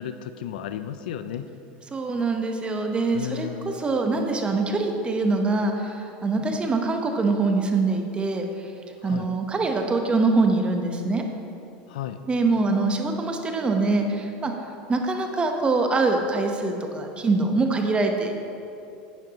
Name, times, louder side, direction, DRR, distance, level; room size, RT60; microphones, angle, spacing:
voice 1, 0.0-1.5 3.1-3.8 9.0-9.3 11.9-12.2, left 10 dB, 80° left, 11 dB, 0.4 m, -33 dB
voice 2, 1.9-8.5 9.0-11.2 12.3-14.5 14.9-18.4, right 3 dB, 20° right, 4 dB, 1.1 m, -24 dB
11.0 x 9.0 x 3.0 m, 2.7 s
supercardioid pair, 105°, 5 cm